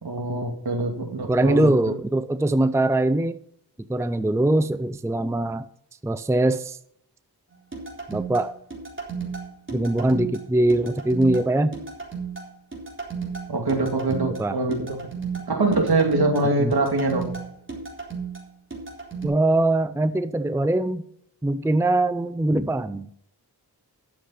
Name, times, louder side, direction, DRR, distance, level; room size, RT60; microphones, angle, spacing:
voice 1, 0.0-1.9 13.5-15.0 15.5-17.2, right 2 dB, 65° right, 3 dB, 2.5 m, -24 dB
voice 2, 1.3-3.4 3.9-5.6 6.0-6.8 8.1-8.5 9.7-11.8 14.4-14.6 16.6-16.7 19.2-21.0 21.4-23.1, right 1 dB, 5° right, 13 dB, 0.5 m, -22 dB
sound 1, 7.7-19.3, right 5 dB, 30° right, 3.8 m, -34 dB
11.5 x 7.2 x 5.7 m, 0.68 s
wide cardioid pair, 65°, 40 cm